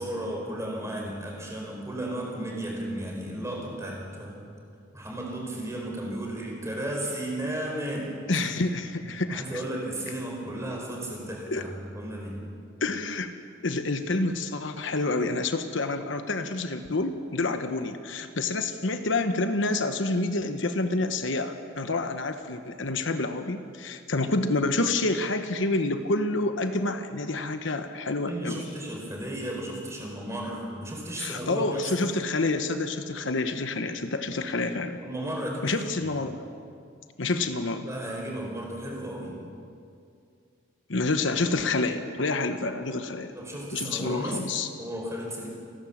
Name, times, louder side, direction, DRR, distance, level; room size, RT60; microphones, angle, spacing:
voice 1, 0.0-4.4 4.9-8.2 9.3-12.4 28.2-31.9 34.9-36.1 37.8-39.4 43.3-44.4 44.8-45.5, right 1 dB, 15° right, -1 dB, 4.9 m, -34 dB
voice 2, 8.3-9.6 11.5-11.6 12.8-13.3 13.6-28.6 31.2-35.0 35.6-36.5 37.2-37.9 40.9-43.3 43.7-44.7, left 2 dB, 70° left, 8 dB, 1.1 m, -28 dB
29.5 x 12.0 x 7.4 m, 2.3 s
head